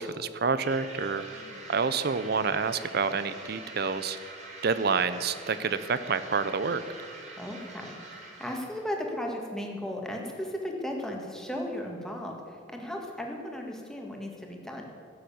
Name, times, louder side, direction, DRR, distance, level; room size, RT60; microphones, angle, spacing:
voice 1, 0.0-4.3 4.6-6.8, right 5 dB, 55° right, 13 dB, 0.6 m, -28 dB
sound 1, 0.6-8.9, right 2 dB, 40° right, 2.6 m, -45 dB
voice 2, 7.4-14.9, left 1 dB, 5° left, 0 dB, 1.8 m, -36 dB
15.5 x 8.0 x 8.6 m, 2.5 s
head